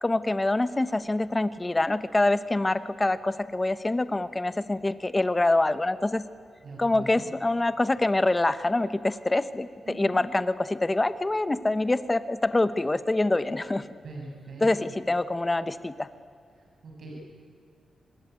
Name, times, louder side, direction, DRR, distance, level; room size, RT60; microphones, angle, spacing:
voice 1, 0.0-6.2 6.8-13.9 14.6-16.1, left 2 dB, 15° left, 13 dB, 1.1 m, -25 dB
voice 2, 6.6-7.3 9.8-10.3 14.0-14.7 16.8-17.1, right 2 dB, 60° right, -2 dB, 7.4 m, -41 dB
26.0 x 21.5 x 9.5 m, 2.2 s
wide cardioid pair, 130°, 0 cm